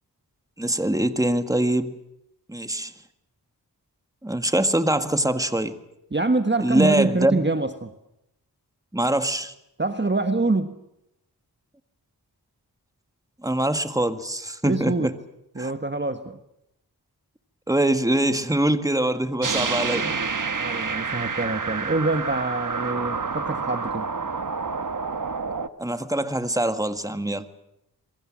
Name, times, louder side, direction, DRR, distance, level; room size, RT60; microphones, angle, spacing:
voice 1, 0.6-1.9 2.5-2.9 4.2-5.8 6.6-7.4 8.9-9.5 13.4-15.1 15.6-15.7 17.7-20.1 25.8-27.4, right 1 dB, 10° right, 9 dB, 1.8 m, -23 dB
voice 2, 6.1-7.9 9.8-10.8 14.6-15.1 15.5-16.4 20.5-24.1, right 2 dB, 30° right, 8 dB, 1.4 m, -25 dB
sound 1, 19.4-25.7, right 5 dB, 50° right, 1.3 m, -28 dB
27.5 x 23.0 x 7.5 m, 0.82 s
wide cardioid pair, 60°, 39 cm